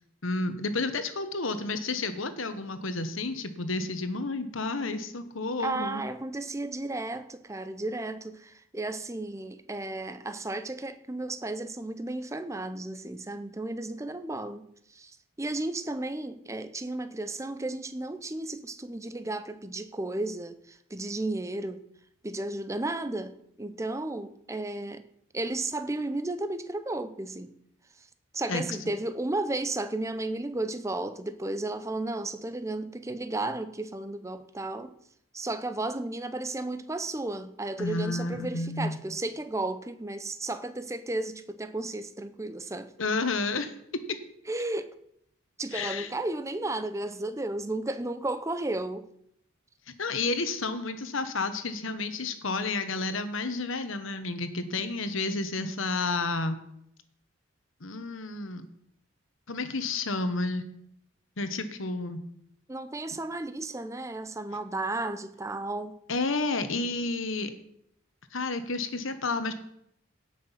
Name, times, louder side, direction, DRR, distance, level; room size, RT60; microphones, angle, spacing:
voice 1, 0.2-6.0 28.5-28.6 37.8-39.0 43.0-43.7 45.7-46.1 50.0-56.6 57.8-58.6 59.5-60.6 61.4-62.2 66.1-67.5 68.3-69.5, left 3 dB, 75° left, 1.2 m, -31 dB
voice 2, 5.6-14.7 14.9-15.1 15.4-21.8 22.2-25.0 25.3-27.5 28.3-34.9 35.3-42.9 44.5-45.0 45.6-49.1 62.7-65.9, right 2 dB, 15° right, 0.6 m, -33 dB
17.0 x 6.2 x 5.7 m
head